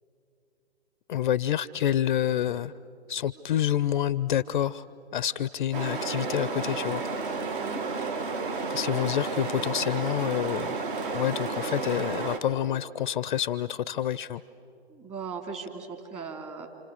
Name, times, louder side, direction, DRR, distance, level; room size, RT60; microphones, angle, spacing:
voice 1, 1.1-2.7 3.1-4.9 5.1-7.0 8.7-10.8 11.1-14.4, left 11 dB, 50° left, 19 dB, 0.5 m, -28 dB
sound 1, 5.7-12.4, right 4 dB, 50° right, 2.3 m, -32 dB
voice 2, 14.9-16.7, right 5 dB, 20° right, 3 dB, 2.7 m, -38 dB
28.5 x 27.5 x 6.4 m, 2.8 s
figure-of-eight pair, 120°, 33 cm